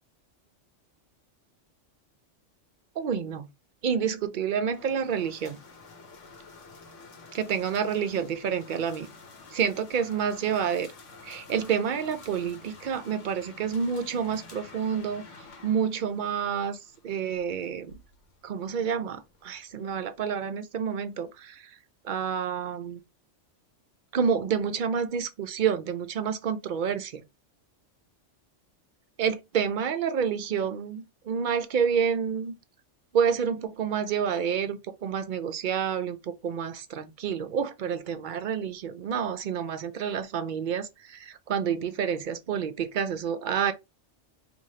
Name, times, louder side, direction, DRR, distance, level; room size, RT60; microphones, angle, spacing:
voice 1, 3.0-3.5 3.8-5.6 7.3-9.1 9.5-10.9 11.2-16.8 17.0-17.9 18.4-21.8 22.0-23.0 24.1-27.2 29.2-32.5 33.1-43.7, right 7 dB, 60° right, 0.5 m, -29 dB
sound 1, 4.7-20.2, left 4 dB, 90° left, 1.2 m, -50 dB
4.7 x 2.6 x 2.8 m
omnidirectional pair, 1.2 m